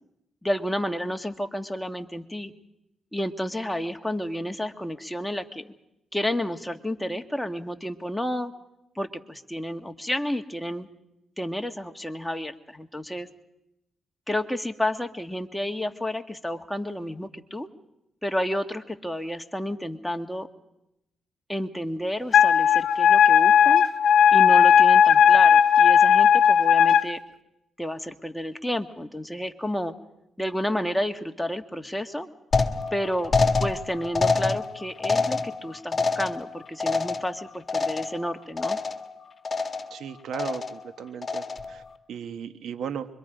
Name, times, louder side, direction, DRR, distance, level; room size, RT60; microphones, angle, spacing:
voice 1, 0.4-2.5 3.1-5.7 6.1-8.5 8.9-10.9 11.4-13.3 14.3-17.7 18.2-20.5 21.5-23.8 24.3-27.2 27.8-29.9 30.4-32.3 32.9-33.3 33.6-38.8, equal, 5° left, 5 dB, 1.7 m, -31 dB
Wind instrument woodwind instrument, 22.3-27.0, left 8 dB, 75° left, 0.7 m, -16 dB
sound 1, 32.5-38.3 38.6-39.1 39.4-40.0 40.3-40.9 41.2-41.8, left 4 dB, 35° left, 1.9 m, -26 dB
voice 2, 39.9-41.8 42.1-43.1, right 8 dB, 75° right, 10 dB, 1.2 m, -36 dB
25.5 x 23.5 x 5.1 m, 0.86 s
supercardioid pair, 65°, 0 cm